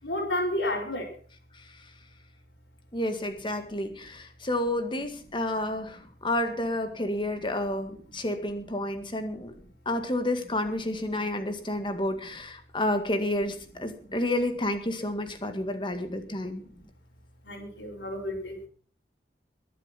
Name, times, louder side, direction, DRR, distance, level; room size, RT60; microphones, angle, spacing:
voice 1, 0.0-1.1 15.7-15.8 16.3-16.9 17.4-18.6, left 1 dB, 85° left, 0 dB, 4.6 m, -32 dB
voice 2, 2.9-9.5 9.9-16.6, left 1 dB, 30° left, 7 dB, 2.0 m, -30 dB
22.0 x 7.8 x 5.9 m, 0.44 s
head